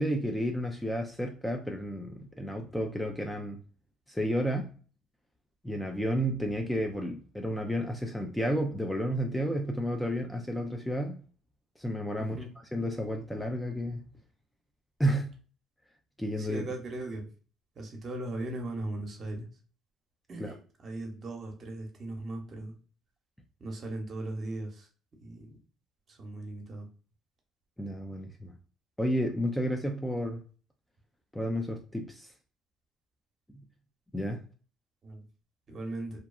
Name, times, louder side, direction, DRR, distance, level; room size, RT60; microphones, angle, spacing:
voice 1, 0.0-3.6 4.1-4.7 5.6-11.2 11.8-14.1 15.0-15.3 16.2-16.7 20.4-20.6 27.8-28.5 29.0-30.4 31.3-32.3 34.1-34.4, equal, 5° left, 0.4 m, -31 dB
voice 2, 12.1-12.5 16.5-17.2 17.8-19.4 20.3-20.5 20.8-22.7 23.6-24.7 25.2-25.5 26.2-26.8 35.0-35.2 35.7-36.1, right 2 dB, 45° right, 0.9 m, -38 dB
2.7 x 2.2 x 2.3 m
supercardioid pair, 85°, 0 cm